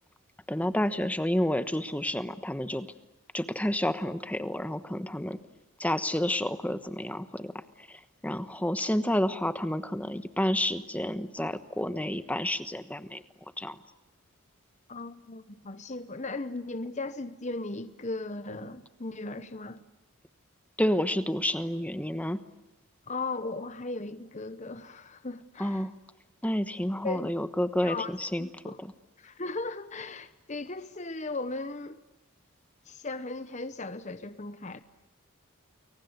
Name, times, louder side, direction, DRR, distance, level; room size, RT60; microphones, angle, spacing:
voice 1, 0.5-2.9 3.3-5.4 5.8-7.5 7.8-13.2 13.6-13.8 20.8-22.4 25.6-25.9 26.4-28.9, left 1 dB, 5° left, 11 dB, 1.1 m, -30 dB
voice 2, 14.9-19.8 23.1-25.8 27.0-27.3 27.8-28.1 28.4-28.8 29.2-32.0 32.9-34.8, left 3 dB, 30° left, 12 dB, 1.0 m, -37 dB
29.5 x 23.0 x 8.1 m, 1.0 s
head